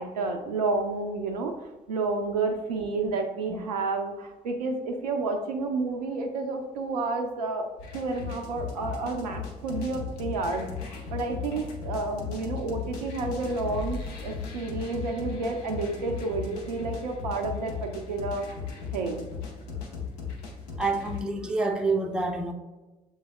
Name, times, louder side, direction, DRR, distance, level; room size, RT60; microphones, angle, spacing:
voice 1, 0.0-1.5 1.9-7.7 7.9-18.4 18.9-19.3, right 3 dB, 75° right, 3 dB, 0.5 m, -30 dB
sound 1, 7.8-21.2, left 5 dB, 65° left, 0.7 m, -37 dB
voice 2, 20.8-22.5, right 3 dB, 5° right, 3 dB, 0.5 m, -27 dB
7.1 x 3.3 x 2.2 m, 1.2 s
figure-of-eight pair, 50°, 20 cm